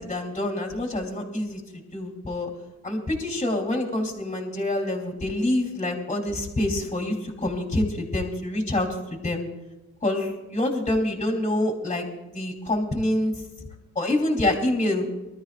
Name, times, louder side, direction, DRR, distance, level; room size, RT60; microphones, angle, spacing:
voice 1, 0.0-1.6 1.9-2.5 2.8-9.4 10.0-12.0 12.3-13.3 14.0-15.1, left 1 dB, 25° left, 1 dB, 4.0 m, -26 dB
24.0 x 13.5 x 2.6 m, 1.0 s
cardioid pair, 90°, 30 cm